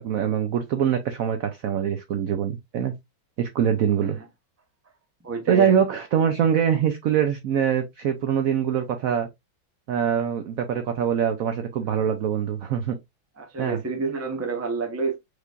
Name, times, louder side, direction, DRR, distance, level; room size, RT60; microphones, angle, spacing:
voice 1, 0.0-2.9 3.4-4.2 5.5-9.3 9.9-13.0 13.6-13.8, right 8 dB, 80° right, 0.7 m, -23 dB
voice 2, 5.2-5.7 11.8-12.0 13.4-15.2, right 4 dB, 20° right, 0.3 m, -29 dB
4.8 x 3.3 x 2.4 m
omnidirectional pair, 2.1 m